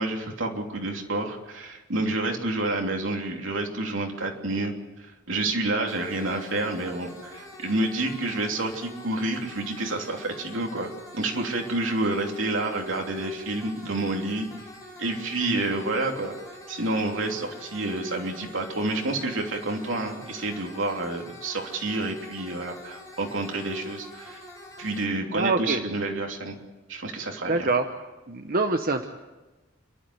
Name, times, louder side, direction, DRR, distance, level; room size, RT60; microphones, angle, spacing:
voice 1, 0.0-10.9 11.1-14.5 15.0-16.3 16.7-24.4 24.8-26.6 26.9-27.7, right 2 dB, 75° right, 2 dB, 3.1 m, -29 dB
sound 1, 5.9-25.0, left 1 dB, 20° left, 5.2 m, -45 dB
voice 2, 25.3-25.8 27.4-27.9 28.3-29.1, right 3 dB, 45° right, 5 dB, 1.0 m, -25 dB
29.0 x 12.0 x 8.1 m, 1.1 s
head